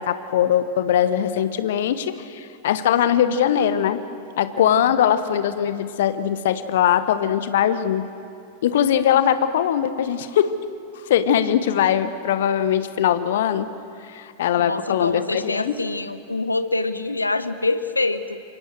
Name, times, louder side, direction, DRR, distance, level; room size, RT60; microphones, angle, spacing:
voice 1, 0.0-4.0 4.4-8.0 8.6-10.5 11.1-13.7 14.1-15.8, left 9 dB, 55° left, 12 dB, 1.2 m, -21 dB
voice 2, 4.6-5.0 14.6-18.4, left 2 dB, 80° left, 12 dB, 1.0 m, -26 dB
28.0 x 24.5 x 6.5 m, 2.5 s
figure-of-eight pair, 90°, 0 cm